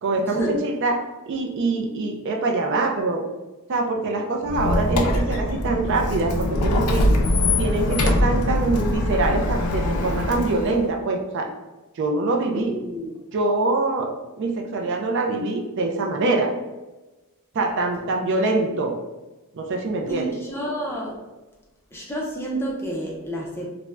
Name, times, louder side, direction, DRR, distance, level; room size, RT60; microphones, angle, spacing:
voice 1, 0.0-3.2 3.7-7.1 7.6-11.5 11.9-12.8 13.3-16.5 17.5-19.0 19.5-20.4, right 2 dB, 55° right, 2 dB, 0.3 m, -24 dB
Squeak, 4.4-10.9, left 1 dB, 80° left, 0.4 m, -22 dB
voice 2, 12.5-13.1 20.1-21.2 21.9-23.7, right 1 dB, 10° left, -3 dB, 0.4 m, -29 dB
2.4 x 2.1 x 3.2 m, 1.1 s
head